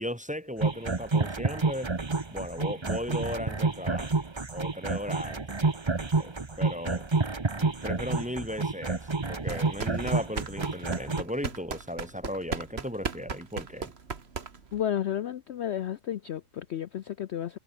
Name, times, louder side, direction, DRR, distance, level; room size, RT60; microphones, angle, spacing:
voice 1, 0.0-1.9 2.3-4.2 4.5-5.4 6.1-7.1 7.6-13.9, equal, 5° right, 2.0 m, -36 dB
sound 1, 0.6-11.2, right 3 dB, 20° right, 0.9 m, -29 dB
sound 2, 9.4-14.8, right 5 dB, 40° right, 1.8 m, -37 dB
voice 2, 14.7-17.6, left 10 dB, 65° left, 0.6 m, -32 dB
omnidirectional pair, 1.7 m